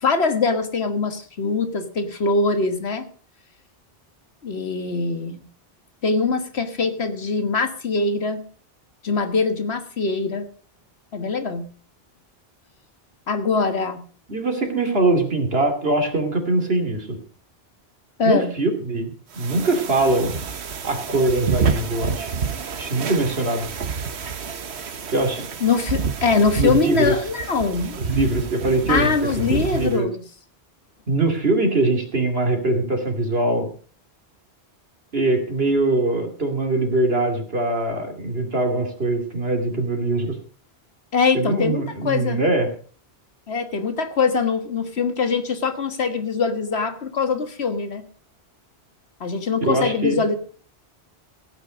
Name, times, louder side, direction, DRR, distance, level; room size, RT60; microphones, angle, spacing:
voice 1, 0.0-3.1 4.4-5.4 6.0-8.4 9.0-10.5 11.1-11.7 13.3-14.0 18.2-18.5 25.6-28.0 28.9-30.2 41.1-42.4 43.5-48.0 49.2-50.4, left 4 dB, 80° left, 8 dB, 1.8 m, -22 dB
voice 2, 14.3-17.2 18.2-20.4 20.8-22.3 22.8-23.7 25.1-25.5 26.6-27.2 28.0-29.1 29.5-30.1 31.1-33.7 35.1-40.4 41.3-42.7 49.6-50.2, right 2 dB, 70° right, 4 dB, 2.9 m, -22 dB
sound 1, 19.3-30.0, right 6 dB, 90° right, 1.3 m, -29 dB
16.0 x 9.4 x 5.1 m, 0.43 s
omnidirectional pair, 1.1 m